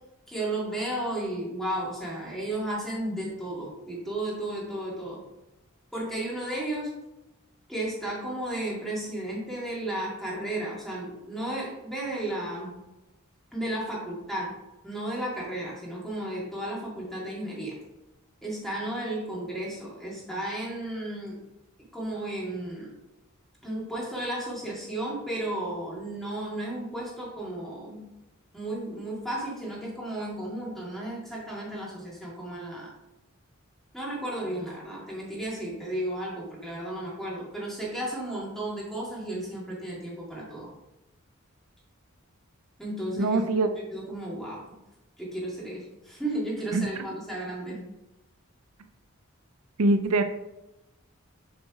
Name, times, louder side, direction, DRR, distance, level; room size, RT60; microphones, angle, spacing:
voice 1, 0.3-5.2 5.9-6.9 7.7-12.7 13.5-14.6 14.8-17.8 18.4-21.4 21.9-22.9 23.6-28.1 28.5-32.9 33.9-40.7 42.8-43.4 43.7-44.6 45.2-47.9, right 1 dB, ahead, -5 dB, 2.1 m, -33 dB
voice 2, 43.2-43.7 46.7-46.9 49.8-50.2, right 2 dB, 85° right, 8 dB, 0.6 m, -23 dB
7.5 x 4.0 x 4.7 m, 0.97 s
head